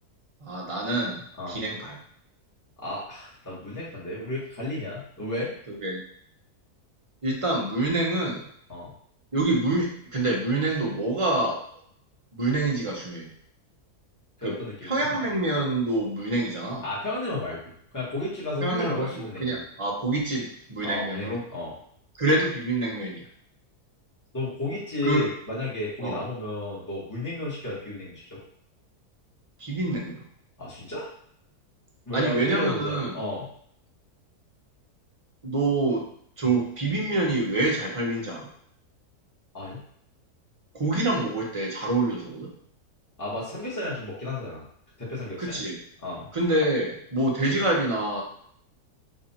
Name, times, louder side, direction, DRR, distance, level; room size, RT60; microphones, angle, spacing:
voice 1, 0.4-1.2 1.5-2.0 5.7-6.0 7.2-8.4 9.3-11.6 12.4-13.3 14.4-14.5 14.8-16.9 18.6-21.4 22.2-23.2 25.0-25.3 26.0-26.2 29.6-30.2 32.1-33.1 35.4-36.0 36.4-38.5 40.7-42.5 45.4-45.8 46.3-48.2, right 2 dB, 25° right, -2 dB, 0.8 m, -26 dB
voice 2, 2.8-5.5 8.7-8.9 14.4-15.3 16.8-17.6 17.9-19.6 20.8-21.7 24.3-28.4 30.6-31.1 32.1-33.5 36.4-36.6 39.5-39.8 43.2-44.6 45.0-45.6 46.0-46.3, left 2 dB, 10° left, -7 dB, 1.5 m, -33 dB
3.9 x 2.9 x 4.3 m, 0.66 s
omnidirectional pair, 1.7 m